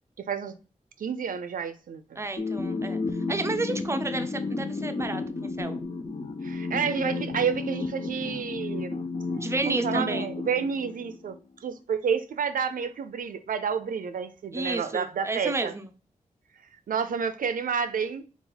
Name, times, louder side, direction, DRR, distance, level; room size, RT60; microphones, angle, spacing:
voice 1, 0.2-0.6 1.0-2.2 6.4-9.0 9.7-15.7 16.9-18.2, right 6 dB, 90° right, 0.5 m, -30 dB
voice 2, 2.2-3.0 3.3-5.8 9.4-10.3 14.5-15.9, right 2 dB, 20° right, 0.5 m, -31 dB
sound 1, 2.4-11.4, left 3 dB, 40° left, 0.5 m, -32 dB
4.1 x 2.4 x 3.9 m
wide cardioid pair, 100°, 14 cm